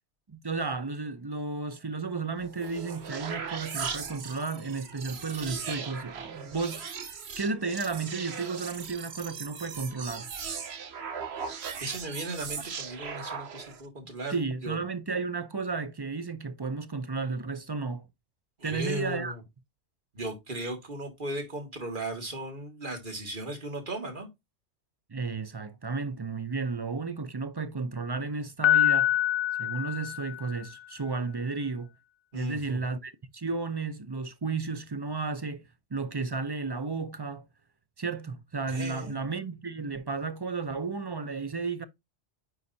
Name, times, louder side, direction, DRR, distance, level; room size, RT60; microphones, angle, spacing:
voice 1, 0.3-6.9 7.4-10.3 14.3-18.1 18.6-19.3 25.1-29.1 29.6-31.9 32.3-35.6 35.9-37.5 38.0-41.8, right 4 dB, 30° right, 0.5 m, -33 dB
sound 1, 2.4-13.9, right 6 dB, 70° right, 1.2 m, -38 dB
voice 2, 11.8-14.4 14.6-14.8 18.6-19.4 20.1-24.3 32.3-32.8 38.7-39.2, right 1 dB, 45° right, 2.2 m, -36 dB
Piano, 28.6-30.7, left 13 dB, 85° left, 0.9 m, -25 dB
9.5 x 4.0 x 2.7 m
omnidirectional pair, 1.2 m